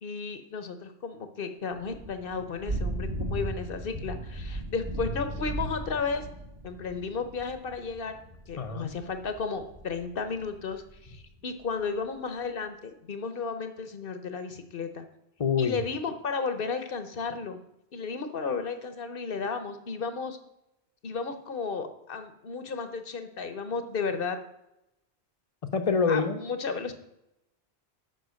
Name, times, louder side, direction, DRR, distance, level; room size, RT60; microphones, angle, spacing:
voice 1, 0.0-6.3 6.6-8.2 8.5-15.1 15.6-17.6 17.9-20.4 21.0-24.4 26.1-26.9, left 5 dB, 55° left, 8 dB, 1.0 m, -33 dB
Thunder / Rain, 1.7-11.2, right 1 dB, 20° right, 1.1 m, -37 dB
voice 2, 8.6-8.9 15.4-15.8 25.7-26.4, left 5 dB, 35° left, 9 dB, 0.8 m, -26 dB
8.0 x 5.6 x 6.4 m, 0.85 s
omnidirectional pair, 1.1 m